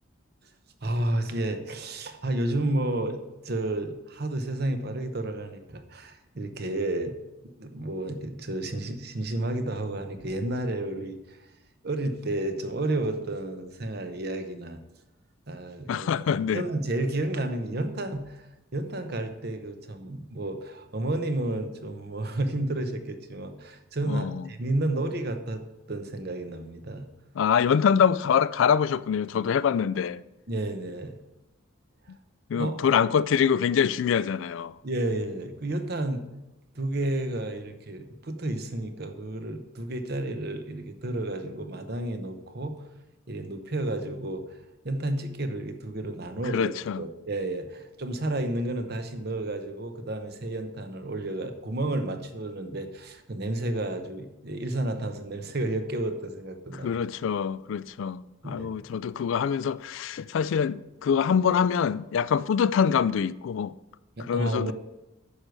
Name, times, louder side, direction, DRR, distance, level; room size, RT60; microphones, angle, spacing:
voice 1, 0.8-7.1 7.4-11.4 11.8-14.8 15.5-16.1 16.5-18.4 18.7-25.6 25.9-27.1 30.5-31.1 32.5-32.9 34.8-36.2 36.7-42.9 43.3-44.6 44.8-46.7 47.0-56.9 58.4-58.7 64.2-64.7, right 1 dB, 50° right, 0.9 m, -31 dB
voice 2, 15.9-16.6 24.0-24.5 27.4-30.2 32.5-34.7 46.5-47.0 56.8-63.7 64.3-64.7, left 7 dB, 65° left, 0.3 m, -25 dB
9.8 x 6.4 x 4.6 m
head